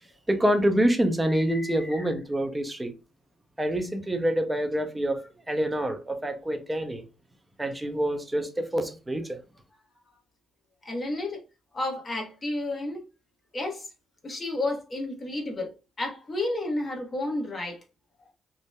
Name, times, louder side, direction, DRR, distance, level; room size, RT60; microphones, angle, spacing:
voice 1, 0.3-2.9 3.6-5.2 5.5-7.0 7.6-9.4, right 1 dB, 15° right, 0.5 m, -26 dB
voice 2, 1.3-2.1 10.8-11.4 11.7-13.0 13.5-13.9 14.2-15.7 16.0-17.8, left 2 dB, 30° left, 0.9 m, -31 dB
2.8 x 2.0 x 2.2 m
cardioid pair, 90°, 0 cm